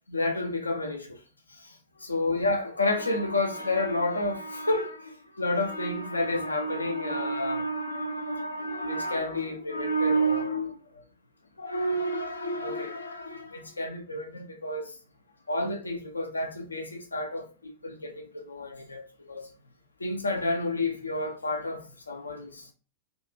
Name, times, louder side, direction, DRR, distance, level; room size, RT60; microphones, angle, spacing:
voice 1, 0.1-1.2 1.5-10.8 11.6-15.0 15.5-19.5 20.0-22.7, left 1 dB, 80° left, 0.4 m, -30 dB
2.7 x 2.3 x 2.2 m
figure-of-eight pair, 90°, 0 cm